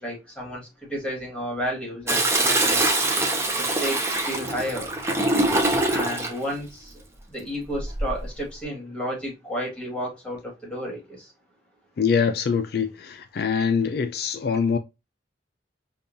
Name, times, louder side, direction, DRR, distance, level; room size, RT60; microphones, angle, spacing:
voice 1, 0.0-2.8 3.5-4.9 5.9-6.9 7.3-11.3, equal, 5° left, 1.6 m, -32 dB
Toilet flush, 2.1-6.4 7.7-8.2, right 2 dB, 15° right, 0.5 m, -23 dB
voice 2, 12.0-14.8, left 6 dB, 60° left, 0.3 m, -24 dB
5.2 x 2.3 x 2.6 m
head